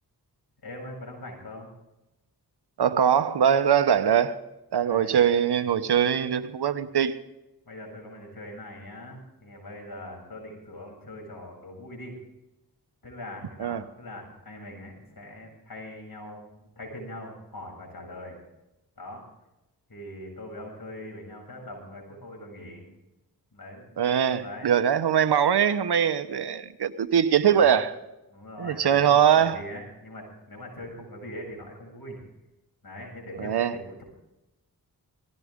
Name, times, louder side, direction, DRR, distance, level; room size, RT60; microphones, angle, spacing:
voice 1, 0.6-1.7 4.8-5.2 7.6-12.2 13.0-18.4 19.0-19.2 19.9-22.9 23.5-23.9 24.4-24.7 27.4-27.8 28.3-32.2 32.8-34.0, left 1 dB, 65° left, 7.8 m, -42 dB
voice 2, 2.8-4.4 4.7-7.1 13.6-13.8 24.0-27.9 28.6-29.6 33.4-33.7, right 8 dB, 85° right, 1.1 m, -22 dB
19.5 x 16.5 x 3.7 m
cardioid pair, 60°, 39 cm